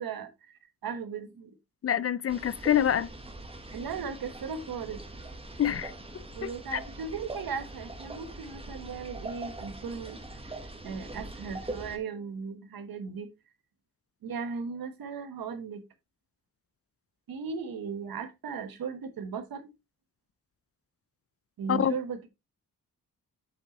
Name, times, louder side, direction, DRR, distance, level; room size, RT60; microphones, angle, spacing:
voice 1, 0.0-1.5 3.7-5.0 6.3-10.2 10.8-13.3 14.2-15.8 17.3-19.6 21.6-22.2, right 5 dB, 80° right, 1.3 m, -37 dB
voice 2, 1.8-3.1 5.6-5.9 6.4-6.8 21.7-22.0, left 9 dB, 45° left, 0.4 m, -26 dB
sound 1, 2.3-12.0, right 2 dB, 15° right, 1.2 m, -42 dB
7.8 x 5.4 x 3.0 m
wide cardioid pair, 110°, 35 cm